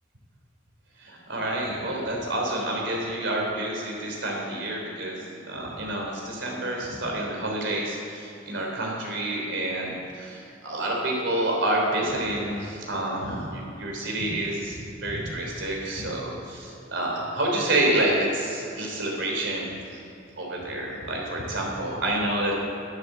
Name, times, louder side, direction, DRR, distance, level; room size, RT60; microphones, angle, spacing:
voice 1, 1.0-20.0 20.4-22.5, right 1 dB, 70° right, -1 dB, 3.4 m, -28 dB
12.5 x 9.7 x 7.5 m, 2.7 s
head